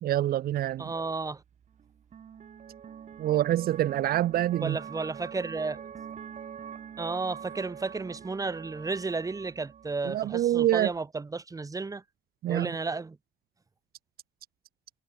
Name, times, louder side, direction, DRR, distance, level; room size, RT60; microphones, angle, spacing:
voice 1, 0.0-0.9 3.2-4.8 10.0-10.9 12.4-12.7, right 13 dB, 65° right, 1.4 m, -26 dB
sound 1, 0.7-11.0, right 8 dB, 45° right, 6.5 m, -45 dB
voice 2, 0.8-1.4 4.6-5.8 7.0-12.0 12.5-13.2, right 3 dB, 20° right, 4.0 m, -33 dB
cardioid pair, 110°, 17 cm